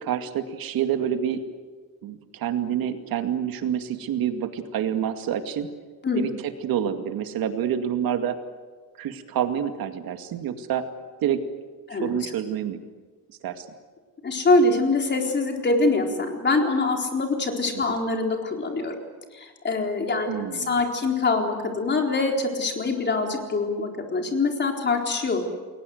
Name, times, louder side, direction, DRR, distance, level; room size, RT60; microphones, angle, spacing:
voice 1, 0.0-1.4 2.0-5.7 6.2-8.4 9.0-10.9 11.2-11.4 11.9-12.8 13.4-13.7 17.9-18.0 20.3-20.8, right 9 dB, 80° right, 7 dB, 2.3 m, -27 dB
voice 2, 11.9-12.3 14.2-18.9 19.3-25.4, left 3 dB, 30° left, 2 dB, 4.1 m, -24 dB
30.0 x 22.0 x 8.0 m, 1.5 s
cardioid pair, 150°, 35 cm